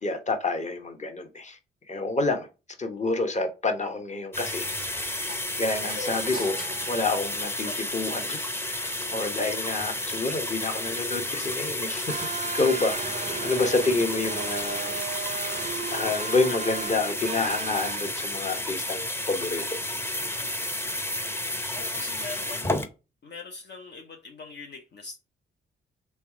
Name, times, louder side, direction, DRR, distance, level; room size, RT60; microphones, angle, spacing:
voice 1, 0.0-1.6 1.9-2.5 2.8-5.3 5.6-6.6 6.9-12.3 12.5-15.0 15.3-15.5 15.9-19.8, left 3 dB, 35° left, 1.1 m, -28 dB
sound 1, 4.3-22.9, left 1 dB, 10° left, 0.7 m, -31 dB
sound 2, 5.3-8.0, right 1 dB, 70° left, 2.4 m, -41 dB
sound 3, 12.1-18.0, right 7 dB, 35° right, 0.4 m, -35 dB
voice 2, 21.7-22.9 23.2-25.2, left 4 dB, 55° left, 0.8 m, -42 dB
3.3 x 3.2 x 4.7 m
supercardioid pair, 50°, 21 cm